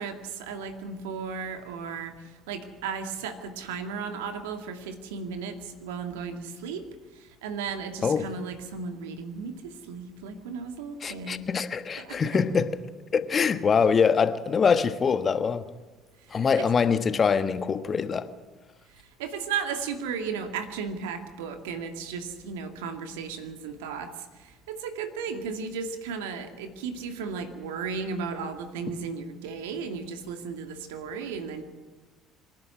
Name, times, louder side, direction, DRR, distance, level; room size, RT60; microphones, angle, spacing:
voice 1, 0.0-6.9 7.1-11.5 12.0-12.4 16.2-16.6 18.9-31.6, right 5 dB, 75° right, 2.2 m, -35 dB
voice 2, 11.0-12.7 13.1-15.7 16.3-18.3, left 6 dB, 35° left, 1.4 m, -24 dB
25.5 x 11.5 x 9.8 m
hypercardioid pair, 60°, 0 cm